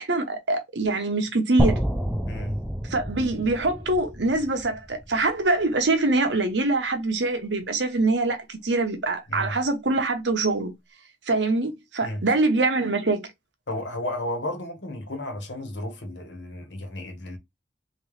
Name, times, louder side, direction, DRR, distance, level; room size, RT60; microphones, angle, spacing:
voice 1, 0.0-1.8 2.9-10.7 11.3-13.3, right 2 dB, 70° right, 0.9 m, -24 dB
sound 1, 1.6-5.6, equal, ahead, 0.4 m, -28 dB
voice 2, 2.3-2.6 9.3-9.5 12.0-12.2 13.7-17.4, left 1 dB, 70° left, 1.3 m, -33 dB
3.3 x 3.0 x 3.1 m
head